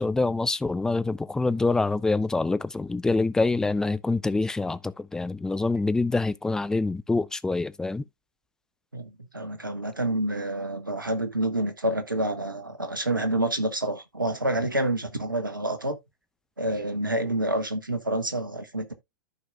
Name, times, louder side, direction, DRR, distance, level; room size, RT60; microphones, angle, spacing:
voice 1, 0.0-8.0, left 3 dB, 5° left, 0.4 m, -26 dB
voice 2, 8.9-16.0 16.6-18.9, right 1 dB, 85° right, 1.2 m, -28 dB
14.0 x 4.7 x 2.3 m
figure-of-eight pair, 100°, 11 cm